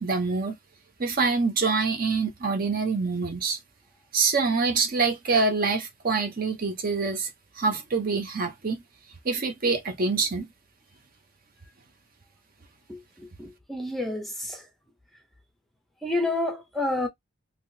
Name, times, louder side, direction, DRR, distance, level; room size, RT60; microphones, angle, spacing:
voice 1, 0.0-0.6 1.0-3.6 4.1-7.3 7.6-8.8 9.2-10.5, right 4 dB, 40° right, 0.7 m, -25 dB
voice 2, 12.9-14.7 16.0-17.1, left 2 dB, ahead, 0.6 m, -29 dB
3.4 x 2.7 x 2.7 m
head